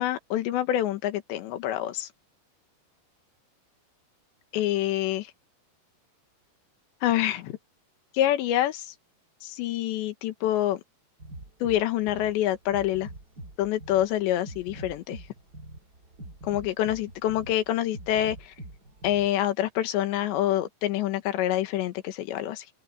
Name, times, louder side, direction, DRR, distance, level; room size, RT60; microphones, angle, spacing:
voice 1, 0.0-2.1 4.5-5.3 7.0-7.6 8.1-8.9 9.4-10.8 11.6-13.1 13.6-15.2 16.4-18.5 19.0-22.7, left 13 dB, 75° left, 3.6 m, -26 dB
sound 1, 11.2-19.3, right 1 dB, 25° right, 3.5 m, -44 dB
open air
omnidirectional pair, 5.2 m